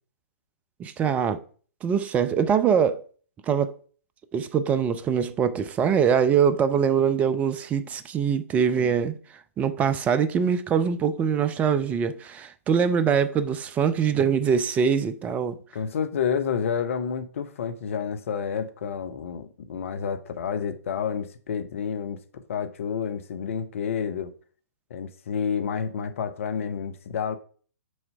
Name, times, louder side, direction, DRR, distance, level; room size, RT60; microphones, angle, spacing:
voice 1, 0.8-1.4 1.8-3.0 3.5-3.7 4.3-9.1 9.6-15.6, right 7 dB, 15° right, 0.5 m, -23 dB
voice 2, 15.7-22.2 22.5-24.3 24.9-27.4, left 7 dB, 55° left, 0.9 m, -29 dB
6.4 x 4.4 x 5.6 m
figure-of-eight pair, 120°, 9 cm